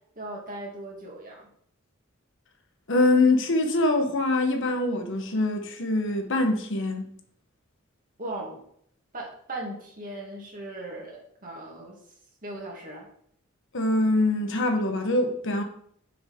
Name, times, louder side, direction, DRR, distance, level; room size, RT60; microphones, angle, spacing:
voice 1, 0.2-1.5 8.2-8.6 9.1-12.0 12.4-13.1, right 1 dB, 40° right, 2.3 m, -38 dB
voice 2, 2.9-7.1 13.7-15.6, left 2 dB, 60° left, 1.1 m, -24 dB
7.2 x 6.6 x 3.7 m
head